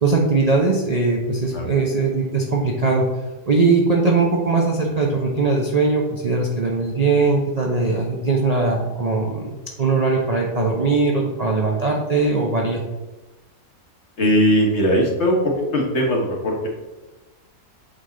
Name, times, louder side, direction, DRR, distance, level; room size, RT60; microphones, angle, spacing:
voice 1, 0.0-3.1 3.5-12.8, right 3 dB, 40° right, -1 dB, 0.6 m, -20 dB
voice 2, 14.2-16.7, equal, 50° left, 0 dB, 1.4 m, -19 dB
8.1 x 3.5 x 3.8 m, 1.2 s
omnidirectional pair, 1.6 m